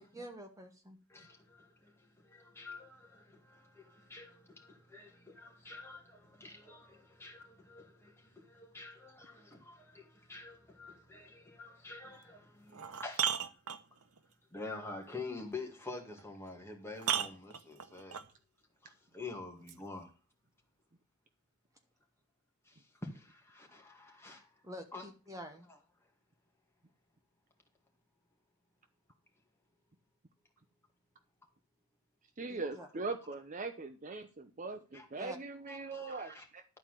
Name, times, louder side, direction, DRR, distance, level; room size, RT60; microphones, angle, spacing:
voice 1, 0.0-1.0 24.6-25.7 32.5-32.9 35.2-35.4, right 1 dB, 15° right, 1.2 m, -47 dB
voice 2, 1.1-1.6 2.3-13.3 14.5-18.2 18.8-20.1 23.0-24.4 24.9-25.0 34.9-35.1 35.7-36.4, left 3 dB, 10° left, 2.0 m, -47 dB
sound 1, 12.1-12.2 12.7-14.2 16.2-16.3 17.0-18.3 19.7-19.8, right 9 dB, 85° right, 0.9 m, -35 dB
voice 3, 32.4-36.6, right 3 dB, 35° right, 0.6 m, -41 dB
11.5 x 4.5 x 7.4 m
head